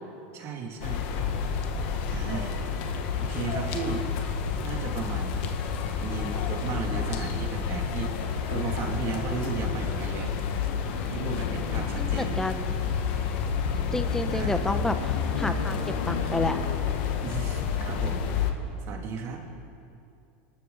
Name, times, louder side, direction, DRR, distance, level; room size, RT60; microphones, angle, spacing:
voice 1, 0.3-1.0 2.1-2.5 3.2-4.0 4.6-5.5 6.0-10.3 11.1-12.4 13.7-14.0 14.3-14.6 17.2-18.4 18.9-19.4, right 5 dB, 45° right, 2 dB, 2.6 m, -35 dB
sound 1, 0.8-18.5, left 6 dB, 65° left, 1.5 m, -29 dB
voice 2, 11.9-12.8 13.9-15.8 16.0-16.6, left 2 dB, 5° left, 7 dB, 1.1 m, -30 dB
27.0 x 13.0 x 4.1 m, 2.6 s
supercardioid pair, 125°, 6 cm